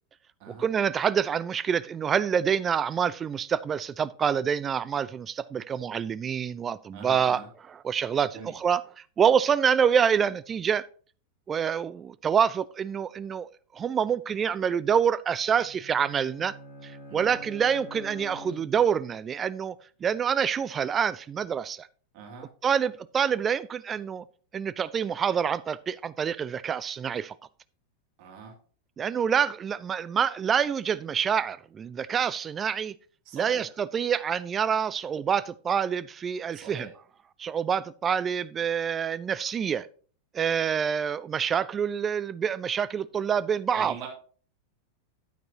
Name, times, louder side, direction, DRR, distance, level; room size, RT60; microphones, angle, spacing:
voice 1, 0.5-7.4 7.7-8.8 9.2-10.9 11.5-13.5 13.7-16.6 16.8-19.8 20.0-21.9 22.6-24.2 24.5-27.4 29.0-32.9 33.3-36.9 37.4-39.9 40.3-43.9, right 7 dB, 20° right, 0.4 m, -26 dB
voice 2, 6.9-7.5 8.3-8.5 17.1-17.4 22.1-22.5 28.2-28.5 33.2-33.7 36.5-36.9 43.7-44.1, right 6 dB, 45° right, 2.7 m, -43 dB
Bowed string instrument, 15.5-19.2, left 2 dB, 55° left, 3.3 m, -46 dB
9.4 x 9.2 x 2.9 m
figure-of-eight pair, 90°, 0 cm